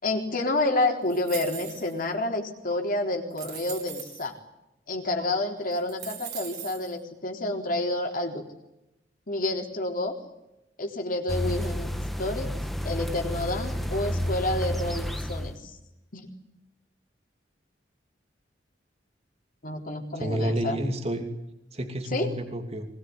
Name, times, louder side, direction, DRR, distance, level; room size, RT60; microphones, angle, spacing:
voice 1, 0.0-4.4 4.9-8.4 9.3-10.2 10.8-11.9 12.2-12.5 12.8-15.8 16.1-16.3 19.6-20.8 22.1-22.3, left 2 dB, 50° left, 3 dB, 4.0 m, -29 dB
sound 1, 1.1-2.1 2.7-2.8 3.3-4.3 5.2-5.3 5.7-6.9, right 9 dB, 60° right, 4.5 m, -40 dB
sound 2, 11.3-15.6, equal, ahead, 1.7 m, -30 dB
voice 2, 20.2-21.3 21.7-22.9, equal, 35° right, 5 dB, 2.8 m, -29 dB
23.5 x 21.0 x 9.7 m, 0.91 s
head